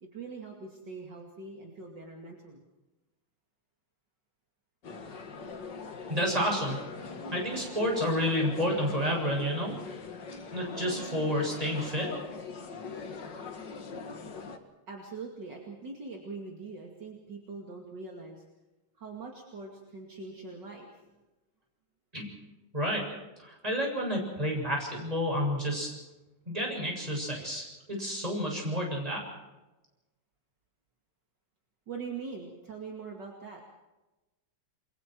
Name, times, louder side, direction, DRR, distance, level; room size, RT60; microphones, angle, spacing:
voice 1, 0.0-2.6 14.9-18.4 19.0-21.1 31.9-33.6, right 4 dB, 55° right, 0 dB, 3.0 m, -42 dB
sound 1, 4.8-14.6, left 4 dB, 55° left, 2.3 m, -41 dB
voice 2, 6.1-6.8 7.3-9.7 10.5-12.1 22.1-22.3 22.7-23.0 23.4-25.9 26.5-29.2, equal, 15° right, -1 dB, 7.4 m, -30 dB
29.0 x 22.5 x 4.7 m, 1.1 s
omnidirectional pair, 2.4 m